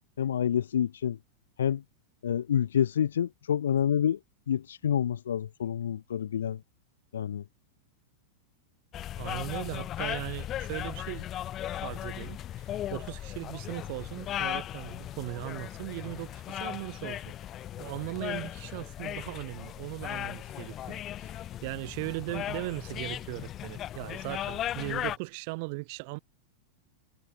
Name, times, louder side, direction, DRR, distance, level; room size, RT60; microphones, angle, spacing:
voice 1, 0.2-1.2 1.6-1.8 2.2-4.2 4.5-6.6 7.1-7.4, left 9 dB, 65° left, 0.5 m, -28 dB
sound 1, 8.9-25.2, left 12 dB, 30° left, 0.7 m, -37 dB
voice 2, 9.2-11.3 11.8-17.3 17.8-26.2, right 30 dB, 45° right, 0.9 m, -38 dB
figure-of-eight pair, 90°, 0 cm